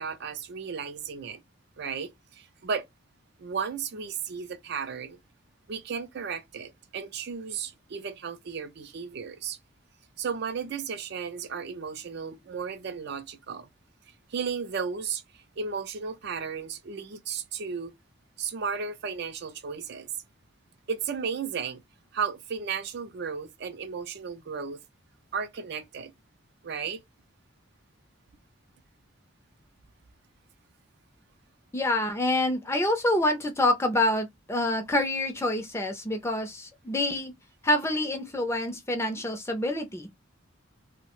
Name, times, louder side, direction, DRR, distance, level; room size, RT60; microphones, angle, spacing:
voice 1, 0.0-1.4 1.8-2.8 3.4-5.2 5.7-9.6 10.2-13.7 14.3-17.9 18.4-20.1 20.9-21.8 22.1-24.8 25.3-26.1 26.6-27.0, right 6 dB, 55° right, 0.4 m, -34 dB
voice 2, 31.7-37.3 37.6-40.1, left 1 dB, 15° left, 0.5 m, -27 dB
2.7 x 2.1 x 2.9 m
head